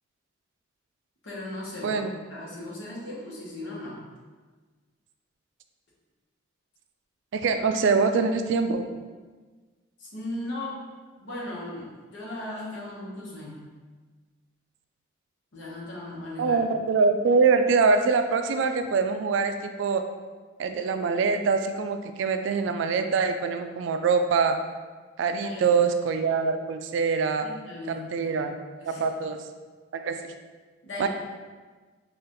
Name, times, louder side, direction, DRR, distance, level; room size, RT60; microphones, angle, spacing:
voice 1, 1.2-4.0 10.0-10.8 11.2-13.7 15.5-16.6 25.3-25.7 27.4-28.3 28.8-29.1 30.8-31.1, left 1 dB, 70° left, -5 dB, 1.1 m, -37 dB
voice 2, 7.3-8.8 16.4-20.0 20.6-24.6 25.2-27.5 27.9-28.6 28.9-29.4 29.9-30.3 31.0-31.1, right 4 dB, 70° right, 7 dB, 0.3 m, -24 dB
4.0 x 2.5 x 3.8 m, 1.4 s
head